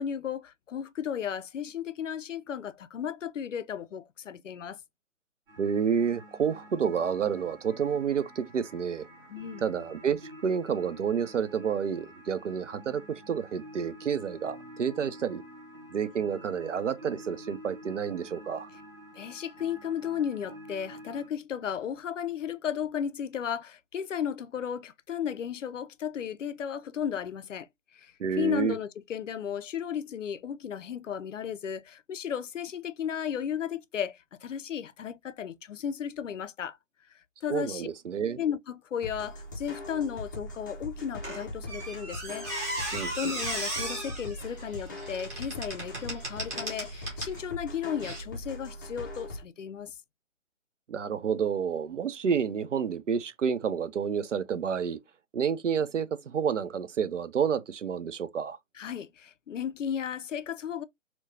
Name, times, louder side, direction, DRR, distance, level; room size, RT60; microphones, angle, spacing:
voice 1, 0.0-4.8 9.3-9.7 19.1-36.8 37.4-37.9 38.4-42.8 43.1-49.9 58.7-60.8, left 8 dB, 70° left, 0.5 m, -34 dB
sound 1, 5.5-21.3, equal, 45° right, 1.7 m, -48 dB
voice 2, 5.6-9.1 9.6-15.4 15.9-18.7 28.2-28.8 37.5-38.4 42.9-43.1 50.9-55.0 55.3-58.6, right 7 dB, 70° right, 0.6 m, -29 dB
sound 2, 39.0-49.4, left 1 dB, 15° left, 0.5 m, -41 dB
Squeak, 41.2-47.4 48.0-48.2, right 1 dB, 15° right, 0.8 m, -36 dB
4.4 x 2.2 x 2.6 m
figure-of-eight pair, 145°, 39 cm